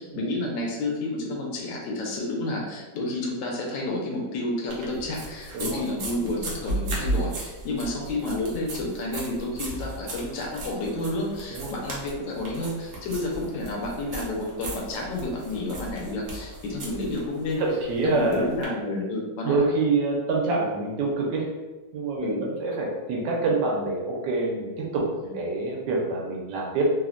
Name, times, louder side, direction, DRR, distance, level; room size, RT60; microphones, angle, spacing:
voice 1, 0.0-17.6 18.0-19.7 22.2-22.4 25.2-25.3, left 2 dB, 80° left, -1 dB, 1.3 m, -30 dB
sound 1, 4.7-18.6, right 2 dB, 60° right, 0.8 m, -36 dB
voice 2, 17.6-18.5 19.4-21.5 21.9-25.1 25.3-26.8, right 3 dB, 80° right, -1 dB, 1.3 m, -26 dB
3.3 x 2.1 x 2.4 m, 1.2 s
omnidirectional pair, 2.0 m